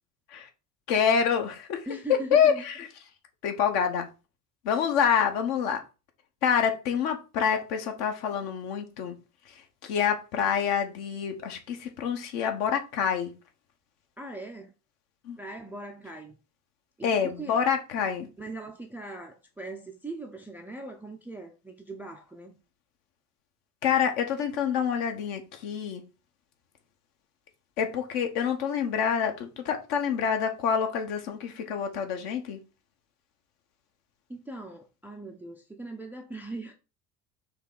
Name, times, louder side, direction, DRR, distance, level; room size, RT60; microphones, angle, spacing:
voice 1, 0.9-1.9 2.3-2.9 3.4-4.1 4.6-5.8 6.4-9.2 9.5-13.3 15.2-15.4 17.0-18.3 23.8-26.0 27.8-32.6, left 7 dB, 50° left, 1.1 m, -27 dB
voice 2, 1.9-2.6 14.2-14.7 15.4-16.3 17.0-17.6 18.4-22.6 34.3-36.7, right 2 dB, 5° right, 0.4 m, -40 dB
4.6 x 2.9 x 3.9 m
figure-of-eight pair, 65°, 46 cm